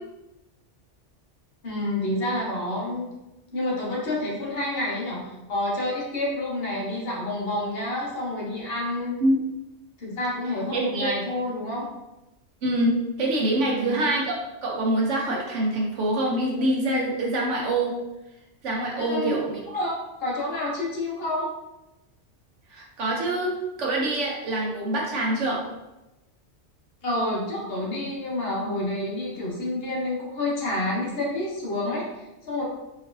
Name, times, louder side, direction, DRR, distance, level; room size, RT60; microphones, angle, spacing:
voice 1, 1.6-3.1 3.5-9.1 10.0-11.9 13.6-14.0 19.0-19.4 19.7-21.5 27.0-32.6, left 1 dB, 55° left, -4 dB, 1.2 m, -29 dB
voice 2, 10.7-11.2 12.6-18.0 18.6-19.6 22.7-25.6, right 1 dB, 85° right, -2 dB, 1.2 m, -25 dB
4.0 x 3.1 x 2.6 m, 0.96 s
omnidirectional pair, 1.2 m